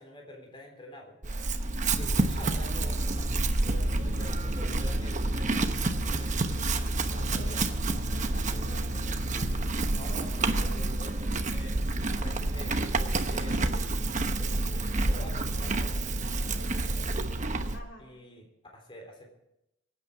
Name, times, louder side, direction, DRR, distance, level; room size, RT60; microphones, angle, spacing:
voice 1, 0.0-1.3 2.0-6.3 7.1-7.7 9.9-11.8 12.2-13.9 14.4-17.1 18.0-19.3, left 1 dB, 25° left, 1 dB, 3.6 m, -47 dB
Chewing mastication / Livestock farm animals working animals, 1.2-17.8, right 2 dB, 40° right, 1.0 m, -29 dB
voice 2, 6.9-7.7 7.9-9.0 17.7-18.1, equal, 65° left, 1 dB, 3.2 m, -49 dB
25.0 x 9.1 x 4.8 m, 0.85 s
head